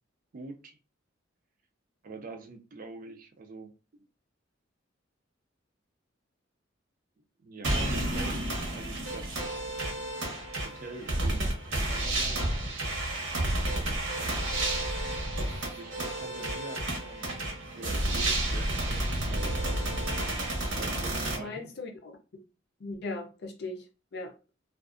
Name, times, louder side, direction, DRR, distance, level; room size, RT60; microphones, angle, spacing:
voice 1, 0.3-0.8 2.0-3.7 7.4-8.4 8.7-9.5 10.6-12.4 15.7-17.4 17.8-19.8 20.8-21.7, right 3 dB, 45° right, 0.4 m, -44 dB
sound 1, 7.6-21.4, right 1 dB, 80° right, 0.9 m, -31 dB
voice 2, 21.4-22.4 22.8-23.8 24.1-24.3, left 2 dB, 60° left, 0.6 m, -38 dB
2.5 x 2.3 x 2.4 m
head